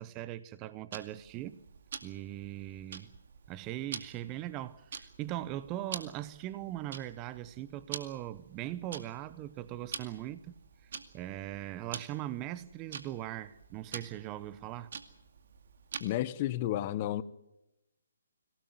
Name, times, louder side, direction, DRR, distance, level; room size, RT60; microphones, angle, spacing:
voice 1, 0.0-1.6 2.0-3.1 3.5-10.5 10.8-14.9, right 13 dB, 20° right, 0.9 m, -40 dB
Tick-tock, 0.9-16.3, right 6 dB, 55° right, 2.2 m, -47 dB
voice 2, 16.0-17.2, left 13 dB, 30° left, 1.1 m, -32 dB
25.0 x 18.0 x 7.8 m
figure-of-eight pair, 145°, 0 cm